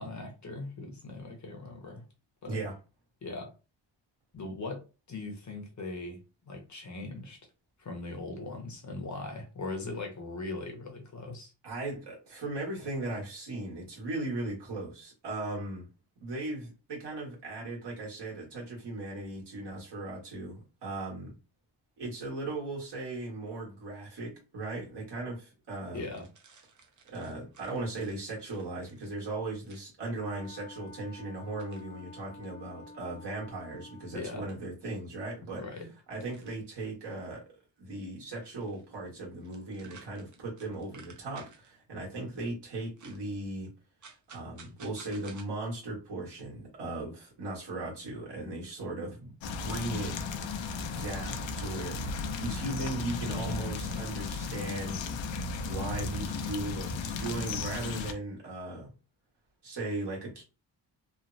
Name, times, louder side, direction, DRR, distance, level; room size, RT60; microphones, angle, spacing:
voice 1, 0.0-2.0 2.4-2.6 3.2-3.5 4.3-6.2 6.5-7.4 7.8-11.5 25.9-26.2 34.1-34.5 35.6-35.9, left 2 dB, 40° left, 0.8 m, -40 dB
voice 2, 11.6-15.9 16.2-21.3 22.0-26.1 27.1-35.6 36.1-37.4 37.8-43.7 44.3-50.1 50.8-55.0 55.6-58.9 59.6-60.4, right 2 dB, 65° right, 1.4 m, -37 dB
sound 1, 25.9-29.1 29.6-29.8 31.6-31.9 33.3-33.4 34.5-34.6 36.2-36.7 38.3-39.1 39.3-41.7 43.0-43.2 44.0-45.4, right 5 dB, 45° right, 0.6 m, -55 dB
Wind instrument woodwind instrument, 30.1-34.4, left 2 dB, 10° left, 0.3 m, -50 dB
sound 2, 49.4-58.1, left 4 dB, 80° left, 0.6 m, -35 dB
3.1 x 2.0 x 2.6 m
wide cardioid pair, 140°, 44 cm